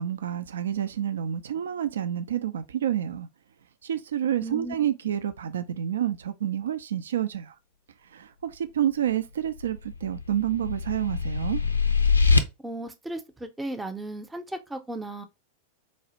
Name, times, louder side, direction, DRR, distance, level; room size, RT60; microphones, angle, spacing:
voice 1, 0.0-3.3 3.8-7.5 8.1-11.6, right 10 dB, 65° right, 0.3 m, -29 dB
voice 2, 4.4-4.8 12.6-15.3, right 1 dB, 10° right, 0.6 m, -35 dB
sound 1, 9.6-12.4, left 4 dB, 80° left, 0.4 m, -24 dB
4.0 x 2.4 x 2.9 m
figure-of-eight pair, 90°, 0 cm